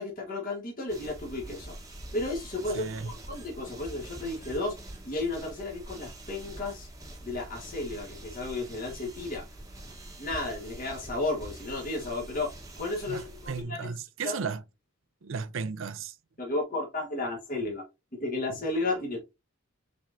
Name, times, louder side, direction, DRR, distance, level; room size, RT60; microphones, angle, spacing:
voice 1, 0.0-1.7 2.1-4.8 5.0-6.9 7.2-9.4 10.2-13.9 14.2-14.4 16.4-17.8 18.2-19.3, left 2 dB, 40° left, 1.4 m, -33 dB
sound 1, 0.9-13.6, right 1 dB, 15° right, 1.0 m, -45 dB
voice 2, 2.7-3.1 13.1-14.6 15.2-16.1, right 5 dB, 70° right, 0.5 m, -35 dB
5.8 x 3.6 x 2.5 m
head